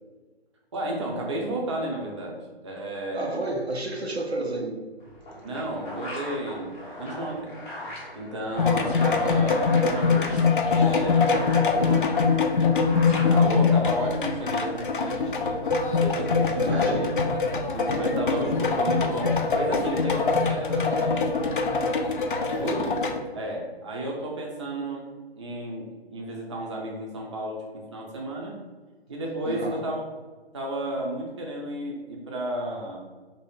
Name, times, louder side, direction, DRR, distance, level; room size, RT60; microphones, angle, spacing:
voice 1, 0.7-3.5 5.4-7.5 8.1-10.5 10.7-11.5 13.1-17.2 17.7-21.8 22.5-23.0 23.3-25.1 25.4-28.6 29.1-30.0 30.5-33.0, right 1 dB, 30° right, -1 dB, 0.5 m, -33 dB
voice 2, 3.1-4.8 11.3-12.1 16.5-17.1 24.1-24.2 29.5-29.8, right 2 dB, 90° right, 2 dB, 0.7 m, -31 dB
sound 1, 5.0-14.2, left 1 dB, 15° left, 0.7 m, -39 dB
sound 2, 8.6-23.2, left 4 dB, 55° left, 0.5 m, -23 dB
3.3 x 2.7 x 3.6 m, 1.3 s
figure-of-eight pair, 140°, 31 cm